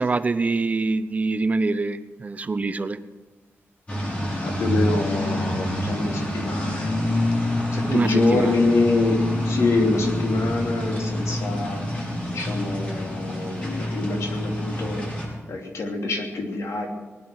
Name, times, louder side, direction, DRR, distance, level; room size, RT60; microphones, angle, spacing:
voice 1, 0.0-3.0 7.9-8.6, right 3 dB, 30° right, 11 dB, 0.8 m, -24 dB
sound 1, 3.9-15.3, left 1 dB, 25° left, 5.8 m, -26 dB
voice 2, 4.4-7.1 7.7-12.0 12.3-15.1 15.5-16.9, left 3 dB, 80° left, 2 dB, 2.8 m, -26 dB
19.0 x 10.5 x 6.3 m, 1.2 s
wide cardioid pair, 115°, 5 cm